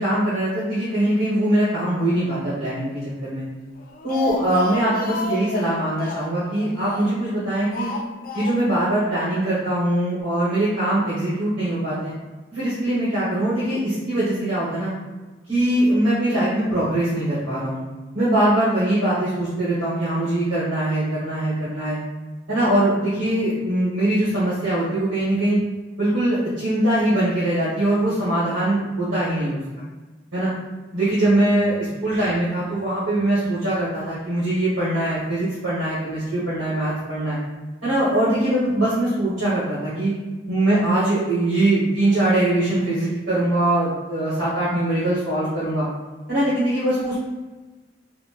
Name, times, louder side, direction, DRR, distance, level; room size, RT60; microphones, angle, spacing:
voice 1, 0.0-2.9 3.2-3.5 4.0-7.9 8.3-12.1 12.5-14.9 15.5-17.8 18.1-22.0 22.5-25.6 26.0-29.6 30.3-30.5 30.9-31.7 32.0-37.4 37.8-40.1 40.5-45.8 46.3-47.2, right 1 dB, 85° right, -11 dB, 1.2 m, -22 dB
Speech, 3.8-7.3 7.7-8.9 9.1-9.2 9.5-9.6, left 3 dB, 50° left, 0.3 m, -31 dB
4.1 x 2.1 x 2.4 m, 1.2 s
head